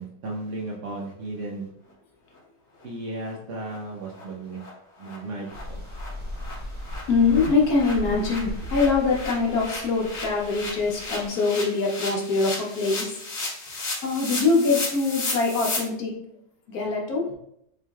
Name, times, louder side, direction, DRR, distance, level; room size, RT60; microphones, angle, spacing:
voice 1, 0.0-1.7 2.8-4.6 5.0-5.8, right 2 dB, 60° right, -3 dB, 0.9 m, -35 dB
sound 1, 2.8-2.9 3.2-3.3 3.7-3.8 4.1-4.2 4.6-4.7 5.0-5.2 5.5-5.6 5.9-15.8, left 2 dB, 45° left, 1.3 m, -34 dB
sound 2, 5.5-11.3, equal, 10° right, 0.5 m, -37 dB
voice 2, 7.1-13.2 13.7-16.2 16.7-17.3, left 4 dB, 65° left, -1 dB, 1.2 m, -23 dB
4.5 x 3.0 x 2.3 m, 0.73 s
omnidirectional pair, 1.8 m